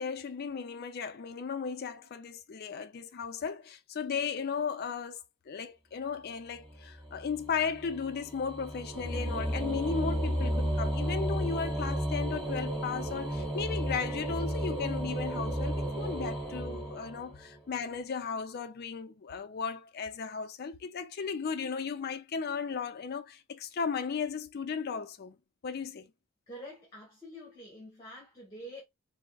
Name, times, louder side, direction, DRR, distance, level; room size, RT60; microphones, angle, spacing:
voice 1, 0.0-25.4 25.6-26.1, left 6 dB, 45° left, 0.4 m, -35 dB
sound 1, 6.7-17.6, equal, 20° right, 1.2 m, -33 dB
voice 2, 26.5-28.8, equal, 15° left, 1.1 m, -46 dB
3.4 x 2.0 x 2.2 m
head